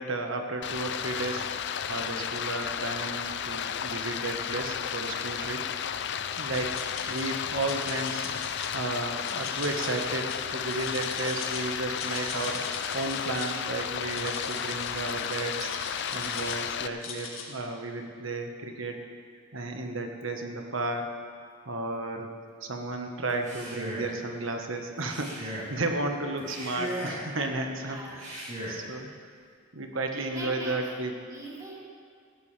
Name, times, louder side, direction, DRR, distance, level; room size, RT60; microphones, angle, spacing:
voice 1, 0.0-1.4 1.9-5.6 6.4-8.3 8.7-12.6 12.9-18.9 19.5-21.1 21.6-22.3 22.6-29.1 29.7-31.1, right 2 dB, 75° right, 3 dB, 1.4 m, -33 dB
Stream, 0.6-16.9, left 8 dB, 60° left, 0.5 m, -33 dB
sound 1, 6.1-7.2 7.6-8.7 9.2-11.6 11.9-13.6 14.0-16.6 17.0-17.4, left 5 dB, 90° left, 2.1 m, -40 dB
voice 2, 12.0-12.6 27.8-28.3 30.1-31.0 31.3-31.8, right 1 dB, 20° right, -5 dB, 3.0 m, -42 dB
Male speech man speaking, 23.3-24.2 25.0-25.8 26.4-27.3 28.1-28.9, equal, 35° right, 4.0 m, -37 dB
18.5 x 14.5 x 3.4 m, 2.1 s
head